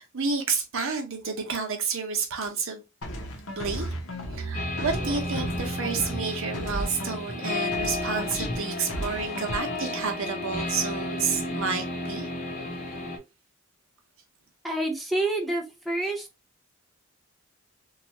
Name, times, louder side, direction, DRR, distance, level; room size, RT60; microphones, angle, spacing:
voice 1, 0.0-2.8 3.5-3.9 4.3-12.3, right 5 dB, 65° right, 0.8 m, -30 dB
sound 1, 3.0-7.4 7.7-10.1, equal, 85° left, 0.9 m, -35 dB
sound 2, 4.5-13.2, left 1 dB, 35° left, 0.8 m, -33 dB
voice 2, 14.6-16.3, right 2 dB, ahead, 0.5 m, -28 dB
3.0 x 2.4 x 2.8 m
head